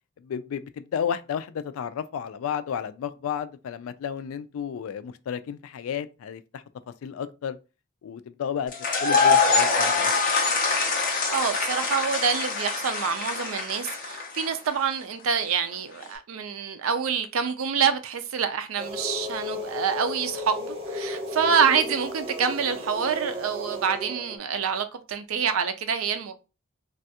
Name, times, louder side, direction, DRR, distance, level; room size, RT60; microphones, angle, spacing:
voice 1, 0.2-6.6 7.0-7.6 8.0-8.7 9.0-10.1, left 8 dB, 85° left, 0.3 m, -32 dB
sound 1, 8.7-14.7, left 4 dB, 40° left, 0.7 m, -24 dB
voice 2, 11.3-26.3, right 6 dB, 90° right, 0.5 m, -26 dB
sound 2, 18.8-24.4, left 1 dB, 25° right, 0.6 m, -34 dB
3.3 x 2.3 x 2.7 m
head